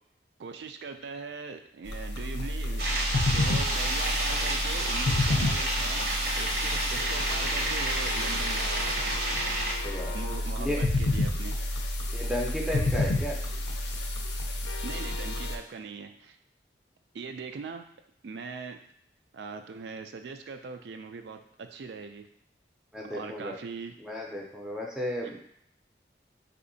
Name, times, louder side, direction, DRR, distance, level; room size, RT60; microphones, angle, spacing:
voice 1, 0.4-6.1 6.3-9.1 10.1-11.6 14.8-16.4 17.1-17.9 18.2-18.8 19.3-22.3 23.1-23.9, right 4 dB, 75° right, 7 dB, 0.3 m, -41 dB
sound 1, 1.9-15.6, left 1 dB, 80° left, 0.5 m, -30 dB
sound 2, 2.8-9.7, right 1 dB, 60° right, 0.7 m, -30 dB
voice 2, 9.8-10.2 10.6-10.8 12.1-13.4 22.9-23.6 24.0-25.4, equal, 5° right, -2 dB, 0.4 m, -33 dB
4.1 x 2.7 x 2.6 m, 0.69 s
head